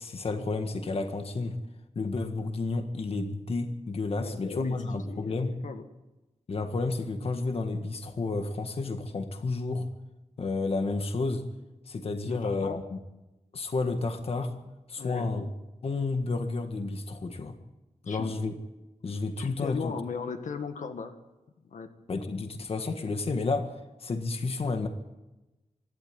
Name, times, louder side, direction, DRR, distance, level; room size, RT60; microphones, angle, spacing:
voice 1, 0.0-1.6 1.9-5.6 6.5-9.9 10.4-11.4 11.9-13.0 13.5-14.5 14.9-15.4 15.8-17.6 18.1-18.5 19.0-19.9 22.1-23.7 24.0-24.9, left 3 dB, 50° left, 6 dB, 1.7 m, -31 dB
voice 2, 4.2-4.8 5.1-5.8 12.2-12.8 15.0-15.5 18.0-18.3 19.4-21.2 21.7-21.9, left 5 dB, 80° left, 7 dB, 1.8 m, -37 dB
25.5 x 12.0 x 9.3 m, 1.0 s
wide cardioid pair, 180°, 13 cm